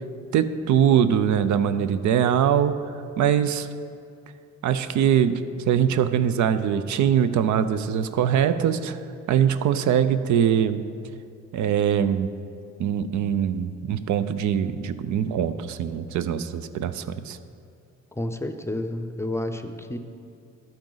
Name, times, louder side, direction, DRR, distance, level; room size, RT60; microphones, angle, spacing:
voice 1, 0.3-2.8 3.2-3.7 4.6-10.9 11.5-12.3 12.8-17.4, right 9 dB, 75° right, 12 dB, 0.6 m, -22 dB
voice 2, 18.1-20.0, left 1 dB, 10° left, 8 dB, 0.6 m, -30 dB
12.0 x 8.7 x 4.0 m, 2.5 s
cardioid pair, 90°, 30 cm